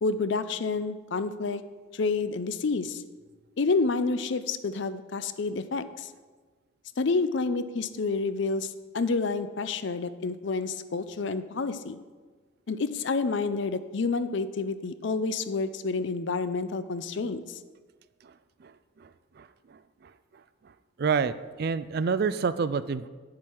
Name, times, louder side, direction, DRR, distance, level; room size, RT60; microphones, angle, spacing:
voice 1, 0.0-1.6 1.9-3.0 3.6-6.1 7.0-12.0 12.7-17.6, left 4 dB, 60° left, 12 dB, 0.5 m, -29 dB
voice 2, 21.0-23.1, right 5 dB, 50° right, 14 dB, 0.3 m, -27 dB
10.0 x 7.5 x 4.6 m, 1.4 s
head